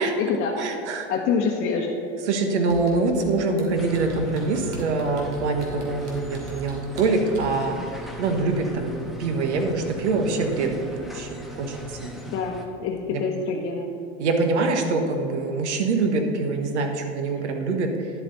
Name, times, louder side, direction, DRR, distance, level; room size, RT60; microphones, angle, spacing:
voice 1, 0.0-0.8 1.1-2.0 7.7-7.9 12.3-13.9, left 5 dB, 40° left, -1 dB, 1.0 m, -27 dB
voice 2, 0.6-1.1 2.3-7.8 8.2-8.9 9.2-12.2 13.1-13.2 14.2-17.9, right 3 dB, 80° right, 4 dB, 1.4 m, -24 dB
Computer keyboard, 2.7-7.6, right 5 dB, 55° right, 2.5 m, -41 dB
sound 1, 3.8-12.7, equal, ahead, 1.1 m, -40 dB
11.0 x 7.7 x 4.0 m, 2.7 s
hypercardioid pair, 100°, 34 cm